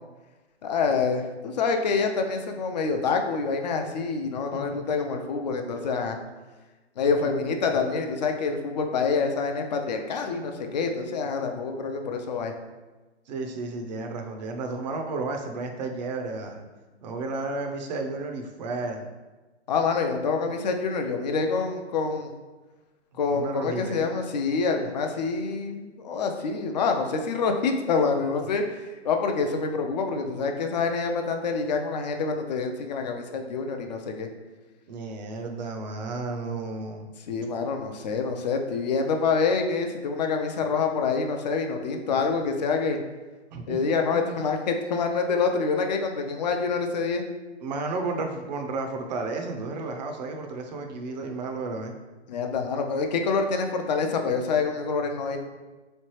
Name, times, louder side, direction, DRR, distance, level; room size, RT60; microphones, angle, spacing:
voice 1, 0.6-6.2 7.0-12.5 19.7-22.3 23.2-34.3 37.3-43.0 43.7-47.2 52.3-55.4, left 4 dB, 40° left, 4 dB, 0.4 m, -26 dB
voice 2, 4.5-4.8 13.3-16.6 17.0-19.1 23.3-24.1 34.9-37.1 43.5-43.8 44.1-44.3 47.6-52.0, right 3 dB, 40° right, 3 dB, 0.5 m, -32 dB
3.8 x 3.2 x 3.0 m, 1.2 s
hypercardioid pair, 135°, 35 cm